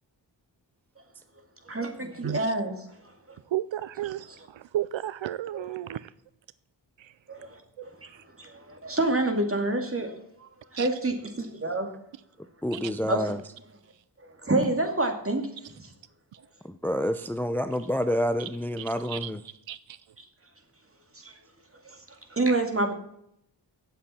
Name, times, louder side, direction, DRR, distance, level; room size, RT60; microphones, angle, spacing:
voice 1, 1.7-2.7 4.3-4.4 5.5-5.7 7.3-7.9 8.4-10.1 10.4-11.9 13.0-13.3 14.4-15.5 15.8-15.9 21.2-21.3 21.8-22.0 22.3-22.9, right 2 dB, 30° right, 5 dB, 2.3 m, -28 dB
voice 2, 3.5-6.1 7.0-7.1 8.1-8.2 10.8-10.9 12.7-12.9 18.4-18.5 18.8-19.3 19.7-20.0, right 13 dB, 80° right, 17 dB, 0.5 m, -33 dB
voice 3, 12.6-13.4 16.6-19.4, equal, 5° left, 11 dB, 0.5 m, -28 dB
17.5 x 7.5 x 4.3 m, 0.73 s
wide cardioid pair, 90°, 45 cm